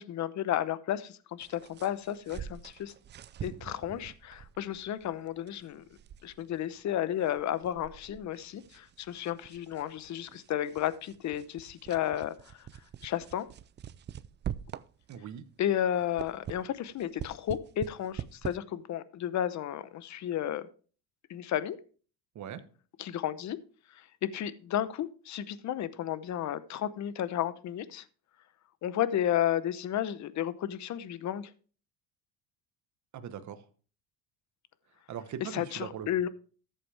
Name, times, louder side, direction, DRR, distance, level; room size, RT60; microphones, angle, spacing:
voice 1, 0.0-2.9 3.4-5.8 6.2-12.3 13.0-13.5 15.6-20.7 21.3-21.8 23.0-23.6 24.0-28.0 28.8-31.5 35.4-36.3, left 11 dB, 45° left, 15 dB, 0.8 m, -32 dB
sound 1, 1.4-15.4 15.8-18.6, right 10 dB, 30° right, 0.4 m, -45 dB
voice 2, 15.1-15.4 22.3-22.6 33.1-33.6 35.1-36.1, right 8 dB, 45° right, 10 dB, 1.2 m, -40 dB
13.5 x 7.7 x 3.4 m, 0.40 s
cardioid pair, 120°, 41 cm